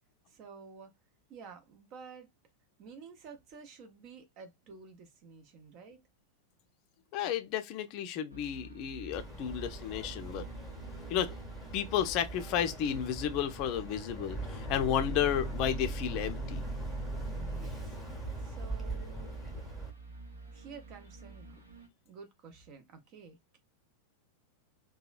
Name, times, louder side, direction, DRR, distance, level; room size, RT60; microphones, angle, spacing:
voice 1, 0.3-0.9 1.3-2.3 2.8-6.0 17.3-19.4 20.5-21.6 22.0-23.6, right 5 dB, 40° right, 0.7 m, -51 dB
voice 2, 7.1-10.5 11.1-11.3 11.7-16.6, left 10 dB, 40° left, 0.5 m, -32 dB
sound 1, 8.3-21.9, right 2 dB, 80° right, 0.9 m, -50 dB
Boat Water vehicle, 9.1-19.9, right 2 dB, 5° right, 1.1 m, -40 dB
2.8 x 2.2 x 2.4 m
figure-of-eight pair, 90°, 0 cm